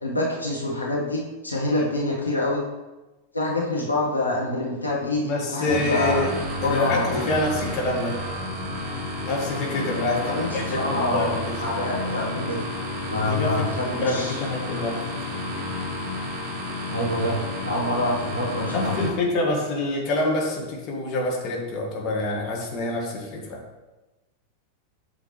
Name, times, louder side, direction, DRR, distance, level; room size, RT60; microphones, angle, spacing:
voice 1, 0.0-2.6 3.3-6.3 6.6-7.2 10.1-12.6 13.1-14.4 16.9-17.4 17.6-19.0, left 2 dB, 85° left, -4 dB, 1.3 m, -26 dB
voice 2, 5.2-6.3 6.6-8.2 9.2-11.5 13.2-15.0 18.7-23.6, left 2 dB, 35° left, -1 dB, 1.9 m, -26 dB
sound 1, 5.7-19.1, left 1 dB, 20° right, 2.2 m, -31 dB
8.4 x 6.3 x 3.2 m, 1.1 s
figure-of-eight pair, 90°, 0 cm